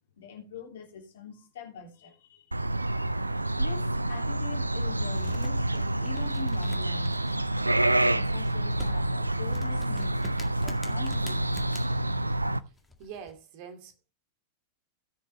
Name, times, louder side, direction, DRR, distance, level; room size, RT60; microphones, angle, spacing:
voice 1, 0.2-2.5 3.6-7.2 8.0-10.1 10.6-11.6, left 7 dB, 60° left, 3.2 m, -43 dB
sound 1, 2.5-12.6, right 1 dB, 85° right, 0.4 m, -28 dB
sound 2, 5.0-13.3, left 3 dB, 10° left, 2.0 m, -47 dB
voice 2, 12.6-14.1, right 7 dB, 45° right, 2.3 m, -46 dB
17.5 x 6.8 x 3.2 m
figure-of-eight pair, 90°, 0 cm